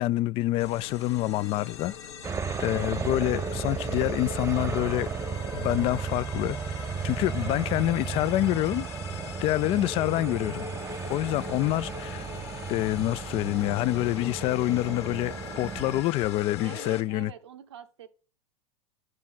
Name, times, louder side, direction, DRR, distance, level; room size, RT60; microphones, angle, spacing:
voice 1, 0.0-2.0 2.6-5.1 5.5-6.6 7.0-8.9 9.4-10.7 11.1-12.3 12.7-17.3, left 16 dB, 40° left, 0.4 m, -27 dB
sound 1, 0.6-17.0, left 7 dB, 75° left, 1.5 m, -41 dB
sound 2, 2.2-16.0, right 7 dB, 20° right, 0.6 m, -34 dB
sound 3, 6.8-16.7, left 6 dB, 25° left, 0.7 m, -52 dB
voice 2, 16.6-18.1, right 8 dB, 75° right, 1.1 m, -45 dB
9.5 x 6.2 x 4.2 m
hypercardioid pair, 90°, 14 cm